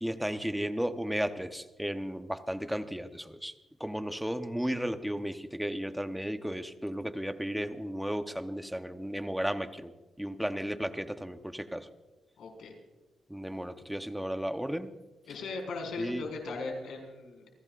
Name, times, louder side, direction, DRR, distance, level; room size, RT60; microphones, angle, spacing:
voice 1, 0.0-3.5 3.8-9.9 10.2-11.9 13.3-15.0 16.0-16.3, equal, ahead, 8 dB, 0.8 m, -34 dB
voice 2, 12.4-12.7 15.3-17.5, left 3 dB, 80° left, 1 dB, 4.8 m, -38 dB
29.0 x 16.0 x 2.5 m, 1.2 s
wide cardioid pair, 155°, 0 cm